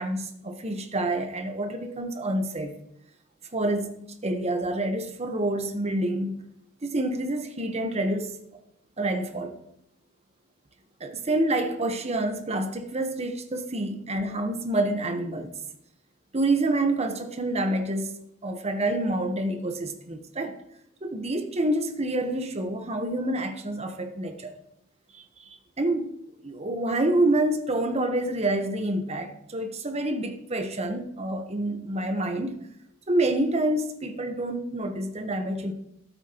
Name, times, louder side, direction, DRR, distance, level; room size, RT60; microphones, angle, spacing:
voice 1, 0.0-2.7 3.5-6.4 6.8-8.3 9.0-9.6 11.0-15.5 16.3-18.2 18.4-20.5 21.0-24.5 25.1-25.5 25.8-26.1 26.4-32.6 33.1-35.7, right 1 dB, 30° right, 1.0 m, -27 dB
13.0 x 8.1 x 3.0 m
head